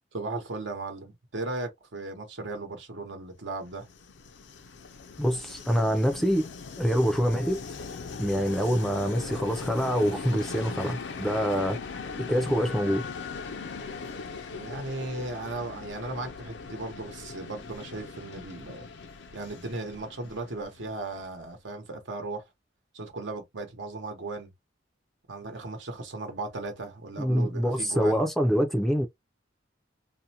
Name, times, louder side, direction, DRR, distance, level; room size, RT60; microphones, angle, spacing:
voice 1, 0.1-3.9 14.5-18.8 19.3-22.4 22.9-24.5 25.3-28.2, right 2 dB, 80° right, 0.9 m, -36 dB
Train, 3.6-21.4, left 4 dB, 70° left, 0.4 m, -40 dB
voice 2, 5.2-6.5 6.8-7.6 8.2-13.0 27.2-29.1, equal, ahead, 0.4 m, -25 dB
2.4 x 2.1 x 2.8 m
head